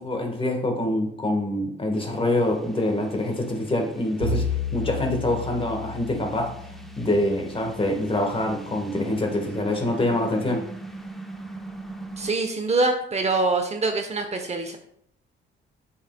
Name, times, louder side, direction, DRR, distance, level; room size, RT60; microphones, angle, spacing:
voice 1, 0.0-4.5 4.7-6.5 7.0-10.7, left 1 dB, 25° left, 3 dB, 1.4 m, -25 dB
sound 1, 1.9-12.3, right 2 dB, ahead, 0.8 m, -42 dB
Bowed string instrument, 4.2-8.4, left 3 dB, 65° right, 1.1 m, -32 dB
voice 2, 12.2-14.8, right 3 dB, 35° right, 5 dB, 0.9 m, -24 dB
8.3 x 5.6 x 2.3 m, 0.69 s
cardioid pair, 90°, 20 cm